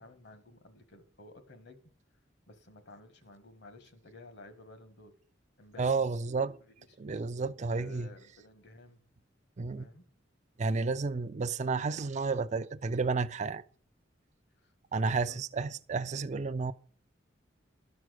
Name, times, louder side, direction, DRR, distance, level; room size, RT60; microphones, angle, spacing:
voice 1, 0.0-1.8 2.5-5.2 5.6-6.0 6.6-7.3 7.7-9.1 9.8-10.1 14.6-15.4, left 2 dB, 60° left, 1.5 m, -54 dB
voice 2, 5.8-6.6 7.0-8.1 9.6-9.9 10.6-13.6 14.9-16.7, right 4 dB, 40° right, 0.4 m, -31 dB
12.5 x 6.1 x 6.5 m
head